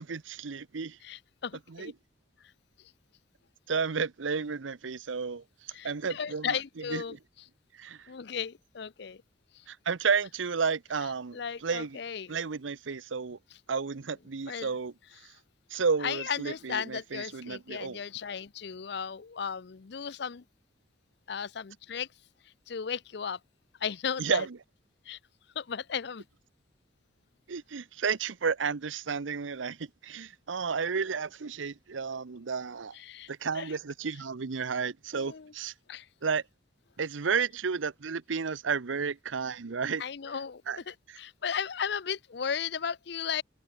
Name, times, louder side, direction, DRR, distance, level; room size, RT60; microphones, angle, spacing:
voice 1, 0.0-1.0 1.7-1.9 3.7-6.5 6.9-7.0 7.8-8.1 9.7-12.0 12.3-13.4 13.7-14.9 15.7-18.0 24.2-24.6 27.5-32.9 33.3-35.7 36.2-36.4 37.0-40.0 40.7-40.8, right 5 dB, 80° right, 0.7 m, -32 dB
voice 2, 1.0-1.9 2.8-2.9 5.7-7.2 8.1-9.2 9.5-9.7 11.3-12.4 14.5-14.7 15.2-15.4 16.0-20.4 21.3-22.1 22.4-23.4 23.8-24.5 25.0-25.2 25.5-26.2 32.9-33.8 35.1-35.5 35.9-36.1 40.0-43.4, left 7 dB, 60° left, 0.6 m, -35 dB
open air
head